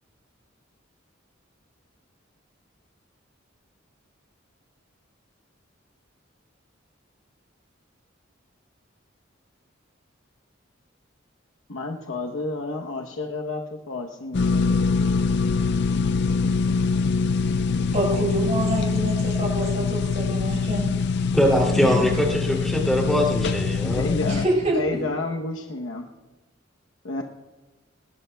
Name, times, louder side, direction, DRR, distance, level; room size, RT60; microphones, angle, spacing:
voice 1, 11.7-14.9 23.8-24.4 24.8-26.1 27.0-27.2, left 2 dB, 85° left, 2 dB, 0.9 m, -30 dB
sound 1, 14.3-24.5, left 4 dB, 60° left, 0.5 m, -24 dB
voice 2, 17.9-20.9 24.3-24.8, right 1 dB, 35° right, 0 dB, 4.6 m, -26 dB
voice 3, 21.3-24.1, equal, ahead, -2 dB, 2.7 m, -22 dB
20.0 x 19.5 x 2.3 m, 1.2 s
head